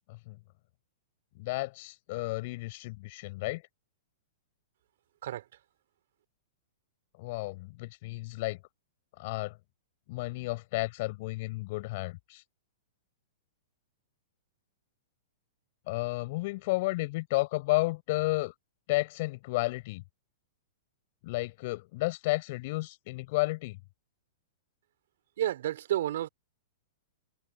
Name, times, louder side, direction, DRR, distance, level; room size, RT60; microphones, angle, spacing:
voice 1, 1.4-3.6 7.2-8.6 9.2-9.6 10.1-12.4 15.9-18.5 18.9-20.0 21.2-23.8, left 22 dB, 50° left, 4.8 m, -32 dB
voice 2, 25.4-26.3, right 12 dB, 70° right, 3.1 m, -30 dB
hypercardioid pair, 140°, 0 cm